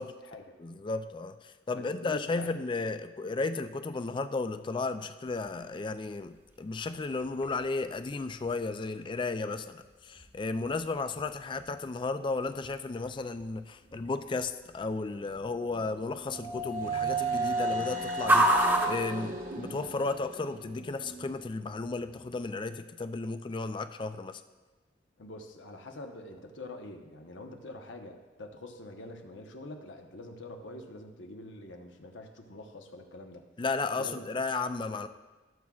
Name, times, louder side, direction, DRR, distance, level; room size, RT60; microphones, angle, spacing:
voice 1, 0.6-24.4 33.6-35.1, left 3 dB, 25° left, 10 dB, 0.3 m, -34 dB
voice 2, 1.8-2.5 25.2-33.5 34.0-34.3, left 2 dB, 85° left, 4 dB, 1.0 m, -45 dB
sound 1, 5.3-20.1, right 1 dB, 10° right, 0.9 m, -35 dB
sound 2, 15.5-21.4, right 3 dB, 45° right, 1.0 m, -34 dB
15.5 x 7.4 x 2.4 m, 1.2 s
head